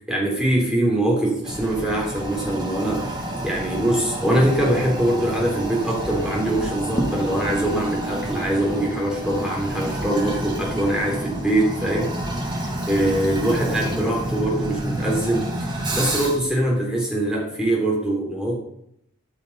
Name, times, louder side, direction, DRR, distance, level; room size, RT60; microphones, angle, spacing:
voice 1, 0.1-12.1 12.5-18.6, right 1 dB, 5° right, -2 dB, 3.3 m, -23 dB
Toilet flush, 1.4-16.5, right 1 dB, 20° right, 2.2 m, -29 dB
13.5 x 5.8 x 5.5 m, 0.73 s
head